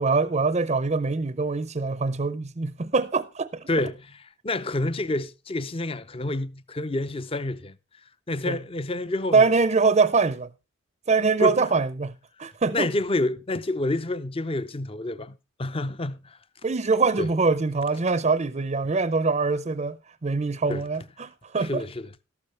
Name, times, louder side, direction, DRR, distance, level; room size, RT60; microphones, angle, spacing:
voice 1, 0.0-3.7 8.4-8.6 9.3-10.5 11.1-12.1 12.4-12.9 16.6-21.8, right 4 dB, 35° right, 0.6 m, -23 dB
voice 2, 3.7-4.0 4.4-7.8 8.3-9.5 11.4-11.6 12.7-16.4 17.2-17.3 20.7-20.8 21.6-22.2, left 2 dB, 25° left, 0.6 m, -28 dB
13.0 x 12.0 x 3.3 m
head